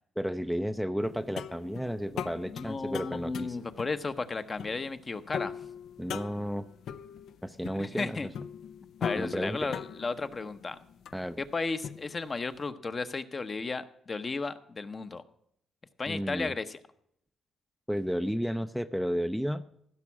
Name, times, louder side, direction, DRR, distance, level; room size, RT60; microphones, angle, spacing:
voice 1, 0.2-3.6 6.0-6.7 7.4-8.2 9.2-9.6 11.1-11.4 16.1-16.5 17.9-19.6, equal, ahead, 10 dB, 0.5 m, -32 dB
sound 1, 1.0-12.6, left 7 dB, 70° left, 0.5 m, -41 dB
voice 2, 2.5-5.5 7.8-8.3 9.0-10.8 11.4-15.2 16.0-16.8, left 3 dB, 35° left, 10 dB, 0.8 m, -34 dB
15.5 x 6.1 x 7.2 m, 0.73 s
cardioid pair, 90°, 0 cm